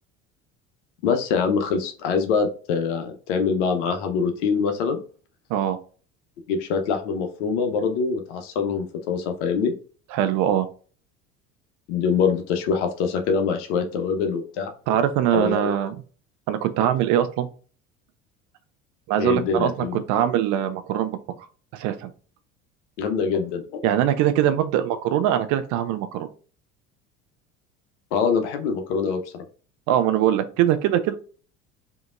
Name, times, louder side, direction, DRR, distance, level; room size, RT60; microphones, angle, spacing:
voice 1, 1.0-5.0 6.5-9.7 11.9-14.7 15.3-15.7 19.2-20.0 23.0-23.9 28.1-29.4, left 5 dB, 60° left, 5 dB, 0.9 m, -24 dB
voice 2, 10.1-10.7 14.9-16.0 16.5-17.5 19.1-21.1 21.7-22.1 23.8-26.3 29.9-31.2, right 11 dB, 50° right, 11 dB, 0.7 m, -22 dB
5.0 x 2.8 x 2.4 m, 0.39 s
figure-of-eight pair, 65°, 39 cm